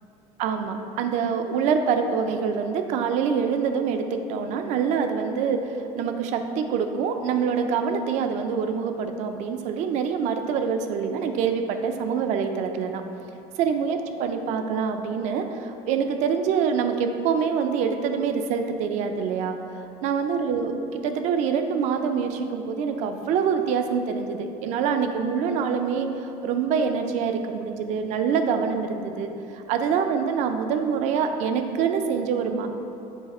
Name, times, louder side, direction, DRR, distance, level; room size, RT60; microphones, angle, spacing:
voice 1, 0.4-5.6 5.9-13.0 13.6-19.6 20.0-20.7 21.0-32.7, right 6 dB, 65° right, 6 dB, 0.5 m, -25 dB
7.3 x 3.4 x 4.1 m, 2.8 s
cardioid pair, 155°, 13 cm